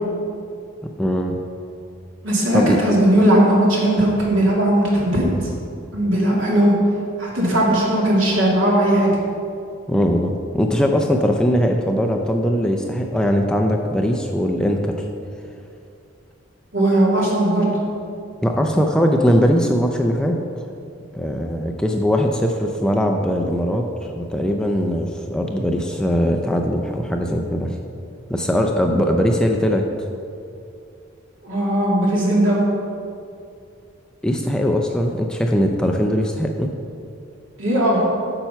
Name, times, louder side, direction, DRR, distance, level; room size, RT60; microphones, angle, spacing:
voice 1, 1.0-1.4 2.5-2.8 9.9-14.9 18.4-20.4 21.1-27.8 28.3-29.8 34.2-36.7, equal, 5° left, 2 dB, 0.4 m, -20 dB
voice 2, 2.2-5.5 5.9-6.7 7.2-9.1 16.7-17.8 31.4-32.6 37.6-38.0, right 1 dB, 75° right, -4 dB, 2.4 m, -18 dB
8.9 x 5.9 x 5.6 m, 2.5 s
head